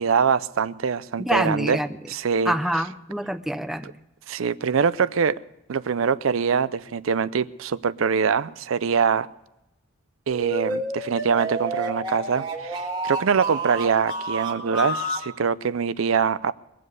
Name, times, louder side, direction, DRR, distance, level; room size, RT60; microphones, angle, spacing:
voice 1, 0.0-1.8 2.1-2.5 4.3-5.4 5.7-9.3 10.3-16.5, right 6 dB, 80° right, 16 dB, 0.5 m, -23 dB
voice 2, 1.2-1.9 2.4-3.9, equal, ahead, 10 dB, 0.5 m, -26 dB
sound 1, 10.3-15.3, right 2 dB, 20° right, 1.8 m, -29 dB
21.5 x 7.7 x 7.9 m, 0.93 s
head